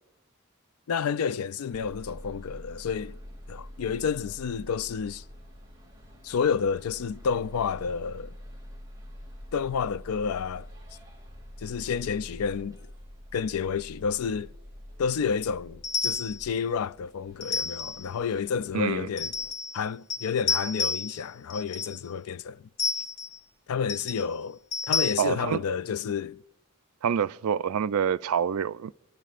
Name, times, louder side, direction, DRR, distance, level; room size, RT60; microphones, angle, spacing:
voice 1, 0.9-3.2 3.5-5.2 6.2-8.3 9.5-10.7 11.6-12.8 13.3-14.5 15.0-19.3 19.7-22.6 23.7-24.6 24.9-26.4, left 6 dB, 80° left, 0.4 m, -30 dB
sound 1, 1.7-19.5, equal, 15° right, 2.4 m, -46 dB
sound 2, 15.8-16.4 17.4-18.1 19.2-19.8 20.1-21.2 21.5-22.0 22.8-23.4 23.9-24.2 24.7-25.1, left 4 dB, 55° left, 0.9 m, -30 dB
voice 2, 18.7-19.1 25.2-25.6 27.0-28.9, right 7 dB, 90° right, 0.4 m, -27 dB
27.5 x 12.0 x 2.5 m
head